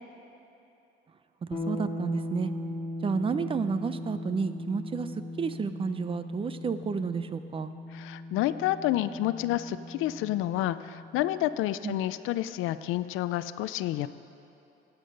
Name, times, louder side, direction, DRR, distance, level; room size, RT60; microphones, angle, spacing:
sound 1, 1.5-11.3, left 1 dB, 25° left, 2.2 m, -39 dB
voice 1, 1.5-2.5 3.0-5.1 5.4-7.7 11.8-12.0, right 5 dB, 25° right, 11 dB, 0.5 m, -31 dB
voice 2, 7.9-14.1, left 14 dB, 90° left, 14 dB, 0.5 m, -29 dB
17.5 x 8.3 x 5.3 m, 2.9 s
cardioid pair, 130°, 20 cm